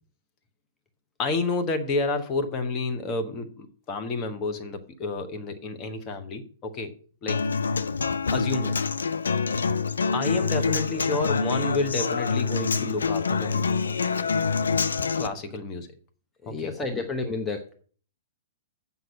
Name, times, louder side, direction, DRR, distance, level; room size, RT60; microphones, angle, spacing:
voice 1, 1.2-6.9 7.2-7.4 8.3-8.8 10.1-13.6 15.2-15.9 16.4-17.0, left 3 dB, 25° left, 7 dB, 1.3 m, -30 dB
Human voice / Acoustic guitar, 7.3-15.3, left 5 dB, 70° left, 0.6 m, -26 dB
voice 2, 16.4-17.7, left 3 dB, 10° left, 3 dB, 1.0 m, -31 dB
7.9 x 5.6 x 7.4 m, 0.44 s
figure-of-eight pair, 110°, 0 cm